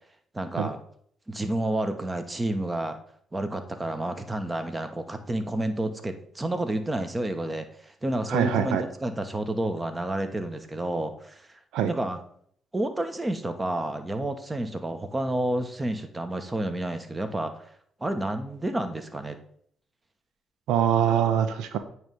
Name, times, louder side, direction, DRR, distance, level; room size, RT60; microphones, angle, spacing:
voice 1, 0.3-0.8 1.3-3.0 3.3-11.5 11.9-12.2 12.7-17.6 18.0-19.4, right 1 dB, 20° right, 8 dB, 1.1 m, -30 dB
voice 2, 8.3-8.8 11.7-11.9 20.7-21.8, right 9 dB, 80° right, 10 dB, 0.5 m, -23 dB
8.9 x 3.2 x 5.2 m, 0.64 s
supercardioid pair, 65°, 0 cm